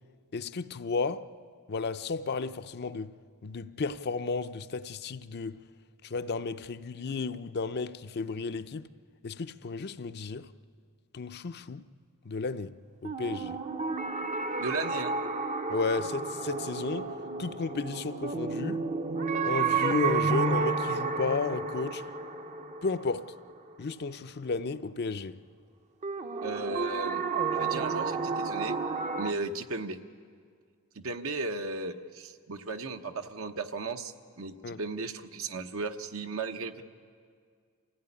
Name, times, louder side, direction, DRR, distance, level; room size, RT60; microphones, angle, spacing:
voice 1, 0.3-1.3 1.7-3.1 3.4-5.6 6.0-8.9 9.2-10.5 11.1-11.8 12.2-12.7 13.0-13.6 15.7-17.1 17.4-18.8 19.4-22.0 22.8-23.3 23.8-25.4 34.6-34.8, left 4 dB, 50° left, 0.6 m, -33 dB
sound 1, 13.0-23.9 26.0-29.3, right 4 dB, 35° right, 0.7 m, -31 dB
voice 2, 14.6-15.2 26.4-27.2 27.5-28.8 29.2-30.0 30.9-36.8, right 3 dB, 70° right, 1.1 m, -36 dB
26.0 x 16.0 x 9.9 m
head